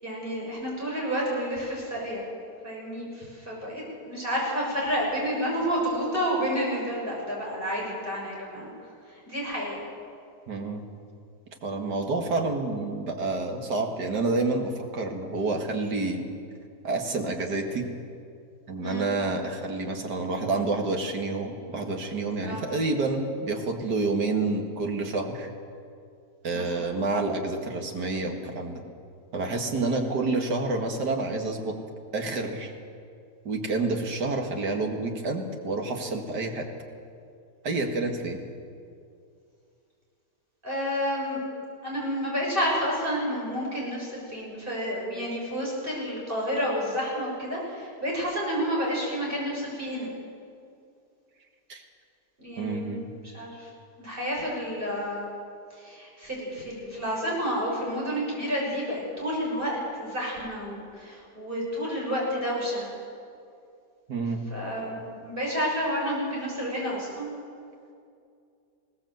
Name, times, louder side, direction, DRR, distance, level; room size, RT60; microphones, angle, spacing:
voice 1, 0.0-2.2 2.6-8.7 9.1-9.8 18.8-19.1 22.4-22.6 26.5-27.0 29.8-30.0 40.6-41.4 41.8-50.1 52.4-52.9 53.3-53.7 54.0-55.3 55.7-62.9 64.5-67.3, equal, 30° right, -4 dB, 7.0 m, -30 dB
voice 2, 10.5-10.8 11.6-16.2 16.8-17.9 18.7-25.5 26.4-28.8 29.3-31.7 32.1-32.7 33.4-36.7 37.6-38.4 51.7-51.8 52.6-53.1 64.1-64.4, right 3 dB, 75° right, 3 dB, 2.5 m, -28 dB
21.0 x 17.5 x 7.9 m, 2.5 s
omnidirectional pair, 1.8 m